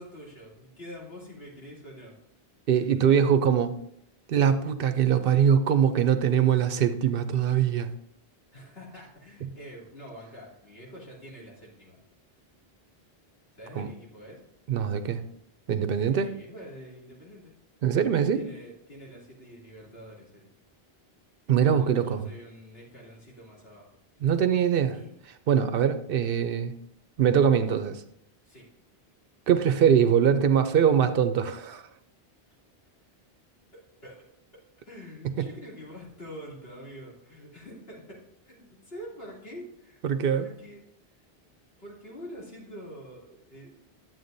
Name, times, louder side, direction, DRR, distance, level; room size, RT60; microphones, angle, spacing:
voice 1, 0.0-2.2 2.8-3.2 8.5-12.0 13.6-14.4 16.0-17.5 18.3-20.5 21.7-23.9 24.9-25.2 27.6-27.8 28.4-28.7 33.7-34.2 34.8-40.0 40.3-40.9 41.8-43.8, equal, 75° left, -5 dB, 3.1 m, -46 dB
voice 2, 2.7-3.8 4.3-7.9 13.8-13.9 14.7-15.2 15.7-16.3 17.8-18.4 21.5-22.3 24.2-25.0 25.5-26.7 27.2-27.9 29.5-31.8 35.4-35.5 40.0-40.4, right 8 dB, 65° right, 11 dB, 0.7 m, -22 dB
11.0 x 7.7 x 2.6 m, 0.73 s
omnidirectional pair, 1.0 m